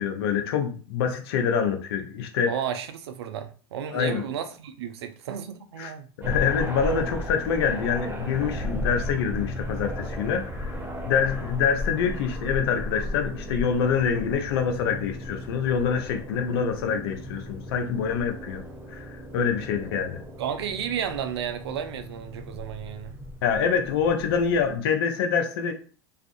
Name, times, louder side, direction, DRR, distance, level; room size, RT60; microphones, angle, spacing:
voice 1, 0.0-2.5 3.9-4.2 5.8-5.9 6.2-10.8 11.1-18.6 18.9-20.2 23.4-25.7, left 6 dB, 70° left, 0.5 m, -26 dB
voice 2, 2.5-6.1 20.4-23.2, right 8 dB, 80° right, 0.4 m, -32 dB
sound 1, 6.2-24.8, left 1 dB, 15° right, 0.7 m, -35 dB
2.4 x 2.3 x 2.6 m
hypercardioid pair, 95°, 13 cm